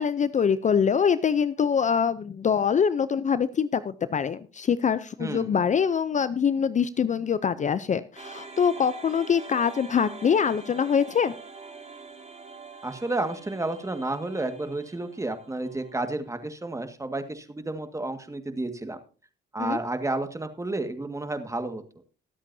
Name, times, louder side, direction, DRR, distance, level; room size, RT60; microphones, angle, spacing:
voice 1, 0.0-11.3 19.6-19.8, left 7 dB, 40° left, 15 dB, 0.6 m, -24 dB
voice 2, 5.2-5.6 12.8-19.0 19.5-21.8, right 2 dB, 15° right, 8 dB, 1.8 m, -31 dB
sound 1, 8.1-16.4, right 4 dB, 35° right, 4.9 m, -45 dB
22.5 x 8.2 x 2.7 m, 0.35 s
cardioid pair, 90°, 20 cm